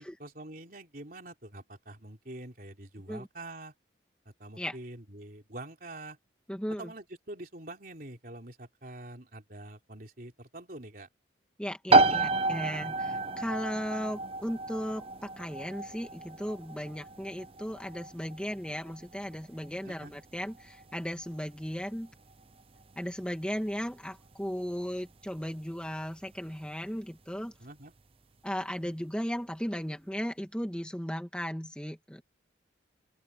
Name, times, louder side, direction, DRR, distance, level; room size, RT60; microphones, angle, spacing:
voice 1, 0.0-3.7 4.3-6.2 6.8-11.1 19.8-20.1 27.6-27.9, right 1 dB, 50° right, 3.6 m, -45 dB
voice 2, 6.5-6.9 11.6-22.1 23.0-27.5 28.4-32.2, equal, 5° left, 2.0 m, -36 dB
sound 1, 11.9-26.4, right 3 dB, 30° right, 0.6 m, -32 dB
open air
head